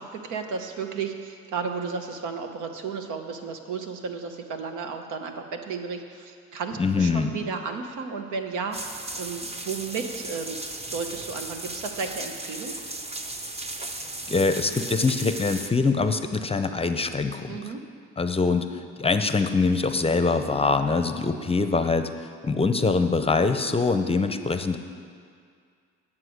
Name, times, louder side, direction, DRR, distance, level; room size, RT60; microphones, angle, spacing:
voice 1, 0.0-10.6 10.9-12.8 17.5-17.8, right 5 dB, 85° right, 5 dB, 1.0 m, -33 dB
voice 2, 6.8-7.3 14.3-17.7 18.2-24.8, left 4 dB, 20° left, 8 dB, 0.6 m, -24 dB
sound 1, 8.7-15.7, right 2 dB, 20° right, 0.8 m, -36 dB
9.7 x 7.4 x 6.4 m, 2.2 s
cardioid pair, 90°, 30 cm